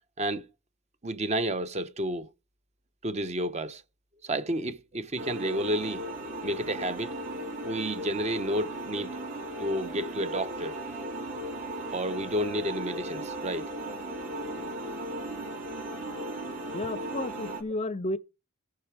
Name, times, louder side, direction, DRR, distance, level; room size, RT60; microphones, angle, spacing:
voice 1, 1.0-2.3 3.0-3.8 4.2-6.0 6.4-7.1 7.6-9.2 9.6-10.7 11.9-13.7, right 1 dB, 30° right, 0.8 m, -31 dB
sound 1, 5.2-17.6, right 1 dB, 60° right, 3.6 m, -36 dB
voice 2, 16.7-18.2, left 2 dB, 30° left, 0.5 m, -32 dB
17.5 x 5.8 x 4.7 m
head